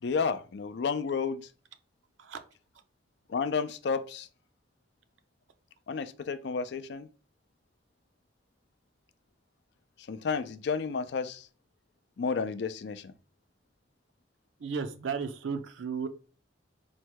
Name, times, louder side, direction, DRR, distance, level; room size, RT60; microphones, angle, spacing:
voice 1, 0.0-1.5 3.3-4.3 5.9-7.1 10.1-11.5 12.2-13.1, left 5 dB, 65° left, 0.4 m, -31 dB
voice 2, 14.6-16.1, right 5 dB, 85° right, 0.5 m, -34 dB
4.3 x 2.2 x 4.6 m
head